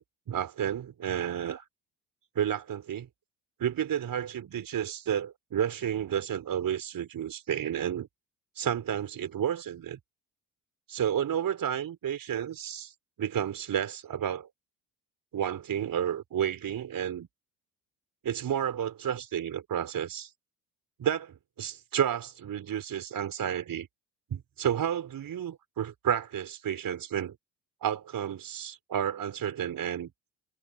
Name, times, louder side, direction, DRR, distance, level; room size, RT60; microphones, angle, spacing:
voice 1, 0.0-1.6 2.3-3.1 3.6-8.1 8.6-10.0 10.9-12.9 13.2-14.5 15.3-17.3 18.2-20.3 21.0-23.9 24.3-27.4 27.8-30.1, right 9 dB, 50° right, 4.4 m, -31 dB
hypercardioid pair, 55°, 44 cm